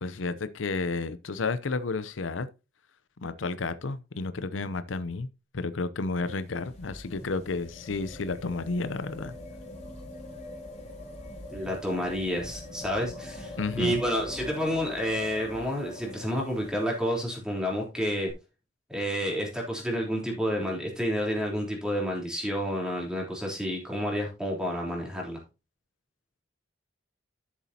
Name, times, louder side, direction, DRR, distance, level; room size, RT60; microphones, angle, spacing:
voice 1, 0.0-2.5 3.2-5.3 5.5-9.3 13.6-14.0, left 3 dB, 85° left, 0.7 m, -31 dB
sound 1, 6.1-17.1 18.3-18.4, left 1 dB, 35° left, 3.2 m, -43 dB
voice 2, 11.5-18.3 18.9-25.4, equal, 5° right, 3.4 m, -30 dB
12.5 x 7.2 x 2.8 m
head